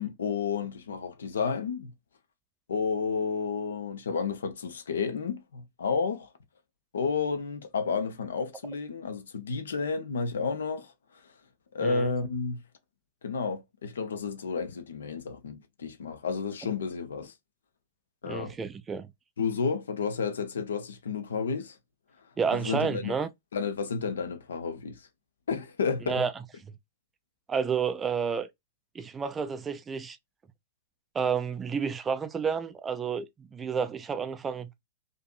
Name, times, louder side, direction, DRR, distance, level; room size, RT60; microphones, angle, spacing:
voice 1, 0.0-1.9 2.7-6.3 6.9-10.9 11.7-12.6 13.2-17.3 18.2-18.6 19.4-21.8 22.5-23.2 23.5-25.1 25.5-26.2, left 5 dB, 65° left, 0.6 m, -31 dB
voice 2, 11.8-12.1 18.3-19.1 22.4-23.3 26.1-26.3 27.5-28.5 28.9-30.2 31.1-34.7, right 6 dB, 15° right, 0.3 m, -30 dB
2.6 x 2.5 x 2.3 m
figure-of-eight pair, 100°, 0 cm